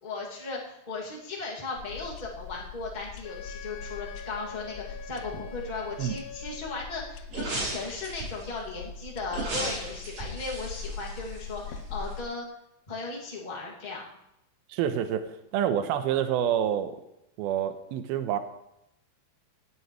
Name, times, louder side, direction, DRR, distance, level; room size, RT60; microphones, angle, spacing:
voice 1, 0.0-12.4 12.9-14.0, left 3 dB, 20° left, -4 dB, 1.3 m, -37 dB
sound 1, 1.8-12.2, left 5 dB, 90° left, 2.7 m, -42 dB
Wind instrument woodwind instrument, 3.2-6.8, left 6 dB, 65° left, 4.2 m, -45 dB
sound 2, 7.3-8.5 9.3-11.8 12.1-12.2, right 2 dB, 55° right, 5.2 m, -35 dB
voice 2, 14.7-15.3 15.5-17.0 17.4-18.4, right 10 dB, 75° right, 9 dB, 2.6 m, -27 dB
17.0 x 9.6 x 3.2 m, 0.83 s
omnidirectional pair, 4.7 m